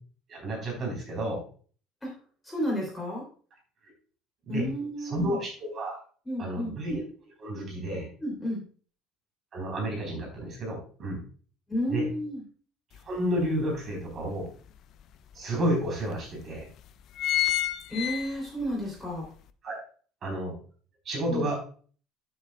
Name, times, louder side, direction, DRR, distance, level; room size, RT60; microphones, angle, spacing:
voice 1, 0.3-1.4 4.5-4.6 5.0-6.0 6.4-7.0 7.4-8.1 9.5-11.2 11.9-12.1 13.1-14.5 15.3-16.6 19.6-19.8 20.2-20.5 21.0-21.5, right 1 dB, 35° right, 0 dB, 3.8 m, -31 dB
voice 2, 2.4-3.3 4.5-5.4 6.2-6.8 8.2-8.6 11.7-12.4 17.9-19.3 21.3-21.5, equal, 5° left, -3 dB, 3.0 m, -31 dB
sound 1, 12.9-13.0 13.5-14.7 15.3-15.4 15.7-15.8 16.4-16.6 16.9-18.7 19.1-19.2, left 14 dB, 45° left, 0.5 m, -29 dB
11.5 x 7.2 x 2.3 m, 0.41 s
cardioid pair, 155°, 0 cm